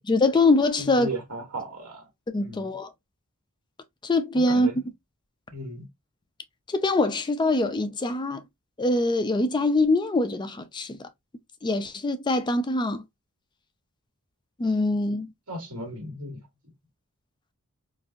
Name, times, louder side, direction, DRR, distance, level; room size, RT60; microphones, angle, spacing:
voice 1, 0.1-1.1 2.3-2.9 4.0-4.7 6.7-8.4 8.8-11.1 11.6-13.0 14.6-15.3, left 2 dB, 20° left, 0.4 m, -23 dB
voice 2, 0.8-2.1 2.4-2.7 4.3-4.8 5.5-5.9 15.5-16.4, right 1 dB, 75° right, 1.7 m, -36 dB
3.9 x 2.6 x 2.5 m
head